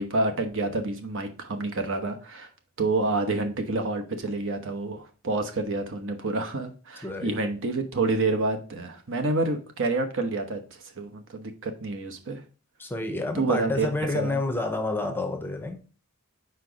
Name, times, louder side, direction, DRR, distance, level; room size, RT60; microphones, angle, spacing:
voice 1, 0.0-2.5 2.8-12.4 13.3-13.9 14.1-14.4, right 3 dB, 60° right, 1.0 m, -28 dB
voice 2, 7.0-7.3 12.8-15.8, left 2 dB, 10° left, 0.6 m, -29 dB
4.7 x 4.5 x 5.0 m
head